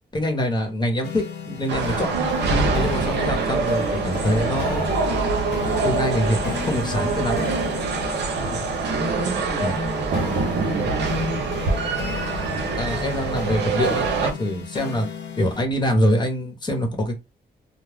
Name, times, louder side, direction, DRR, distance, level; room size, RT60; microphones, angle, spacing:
voice 1, 0.1-2.3 2.7-4.9 5.8-7.5 9.6-9.7 12.8-15.1 15.4-17.1, equal, 25° left, 0.9 m, -24 dB
sound 1, 1.0-15.6, left 7 dB, 90° left, 0.5 m, -35 dB
sound 2, 1.7-14.3, right 4 dB, 85° right, 0.6 m, -24 dB
voice 2, 8.3-11.6, equal, 35° right, 0.9 m, -31 dB
2.3 x 2.0 x 3.4 m
cardioid pair, 90°, 17 cm